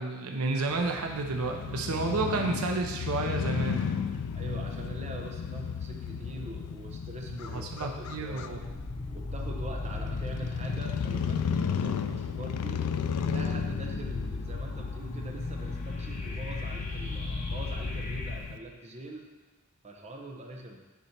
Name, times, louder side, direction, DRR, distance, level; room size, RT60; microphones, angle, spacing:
voice 1, 0.0-3.8 7.3-8.6, right 3 dB, 75° right, 2 dB, 0.7 m, -31 dB
Crow / Motorcycle, 0.7-18.6, left 6 dB, 80° left, 0.4 m, -34 dB
voice 2, 4.3-8.7 9.1-19.3 19.8-20.9, right 1 dB, 30° right, 1 dB, 0.8 m, -43 dB
sound 1, 7.3-8.0 8.4-18.4, left 2 dB, 35° left, 1.1 m, -38 dB
9.5 x 4.2 x 4.5 m, 1.2 s
head